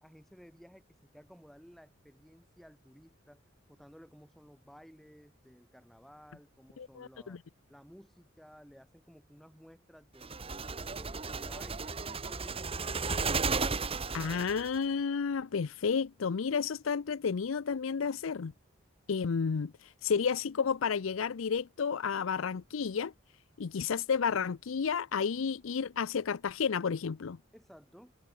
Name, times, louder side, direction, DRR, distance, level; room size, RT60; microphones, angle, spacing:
voice 1, 0.0-3.4 3.7-7.4 7.7-10.4 10.9-13.5 27.5-28.1, equal, ahead, 4.6 m, -56 dB
voice 2, 6.8-7.4 14.1-18.5 19.1-19.7 20.0-23.1 23.6-27.4, left 6 dB, 85° left, 0.5 m, -31 dB
sound 1, 10.2-14.8, right 4 dB, 30° right, 1.5 m, -34 dB
head